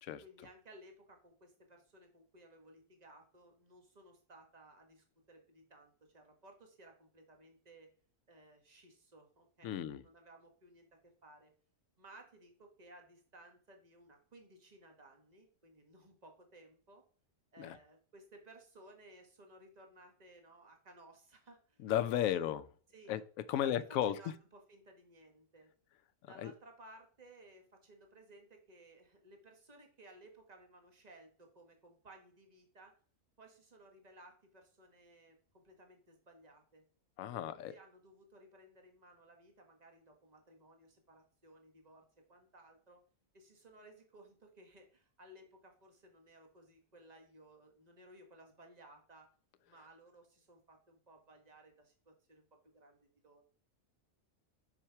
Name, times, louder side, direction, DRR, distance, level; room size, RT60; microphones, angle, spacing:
voice 1, 0.2-7.9 8.3-11.5 12.0-17.0 17.5-22.5 22.9-23.2 23.5-25.7 26.3-33.0 33.4-36.8 37.3-43.0 43.3-49.3 49.7-53.4, right 1 dB, 30° right, 1.4 m, -59 dB
voice 2, 9.6-10.0 17.6-17.8 21.8-22.6 23.1-23.2 23.5-24.2 26.4-26.5 37.2-37.7, left 11 dB, 80° left, 1.0 m, -34 dB
6.0 x 5.7 x 4.6 m
omnidirectional pair, 1.4 m